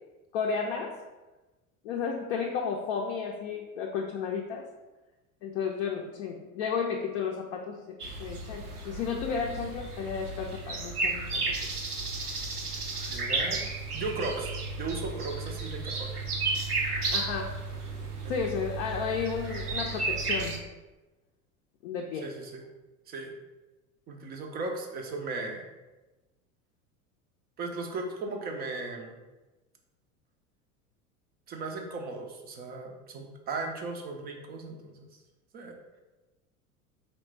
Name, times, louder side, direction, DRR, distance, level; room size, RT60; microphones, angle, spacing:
voice 1, 0.3-0.9 1.8-4.6 5.4-11.7 17.1-17.5 18.3-20.6 21.8-22.3, left 6 dB, 50° left, 0 dB, 0.5 m, -33 dB
sound 1, 8.0-20.6, right 3 dB, 90° right, 0.7 m, -33 dB
voice 2, 13.1-13.6 13.9-14.5 14.8-16.1 22.2-22.7 23.1-23.3 24.1-25.7 27.6-29.2 31.5-35.1 35.5-35.8, right 3 dB, 20° right, 3 dB, 0.4 m, -36 dB
4.1 x 3.1 x 3.2 m, 1.1 s
figure-of-eight pair, 75°, 44 cm